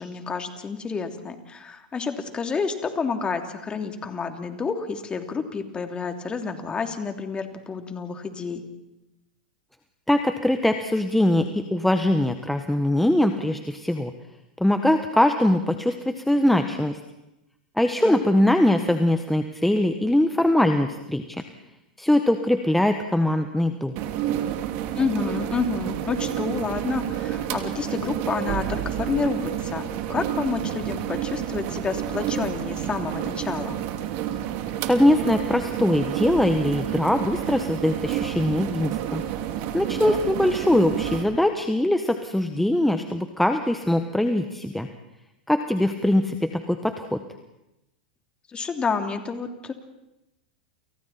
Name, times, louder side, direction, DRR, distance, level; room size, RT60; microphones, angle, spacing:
voice 1, 0.0-8.6 18.0-18.2 24.9-33.8 40.0-40.2 48.5-49.7, left 5 dB, 20° left, 5 dB, 3.1 m, -29 dB
voice 2, 10.1-14.1 14.6-17.0 17.8-21.4 22.0-23.9 34.8-39.2 39.7-44.9 45.5-47.2, left 1 dB, 5° left, 7 dB, 1.5 m, -22 dB
sound 1, 24.0-41.2, right 11 dB, 50° right, 2.7 m, -29 dB
30.0 x 29.0 x 4.4 m, 0.91 s
hypercardioid pair, 100°, 5 cm